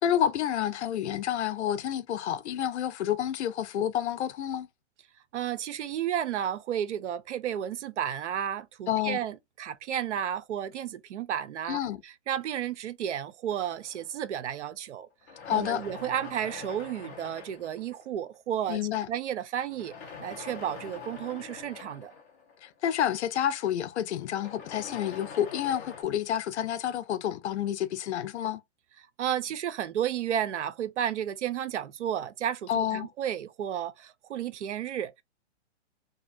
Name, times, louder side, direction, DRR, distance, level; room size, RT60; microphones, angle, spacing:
voice 1, 0.0-4.7 8.9-9.2 11.7-12.0 15.4-15.8 18.7-19.1 22.6-28.6 32.7-33.1, left 10 dB, 70° left, 0.5 m, -29 dB
voice 2, 5.3-15.1 15.5-18.8 19.1-19.9 20.2-22.1 29.2-35.2, right 10 dB, 80° right, 0.6 m, -32 dB
sound 1, 13.5-14.7 15.2-18.3 19.7-23.1 24.2-26.0, left 5 dB, 15° left, 0.4 m, -45 dB
2.7 x 2.2 x 2.5 m
hypercardioid pair, 145°, 35 cm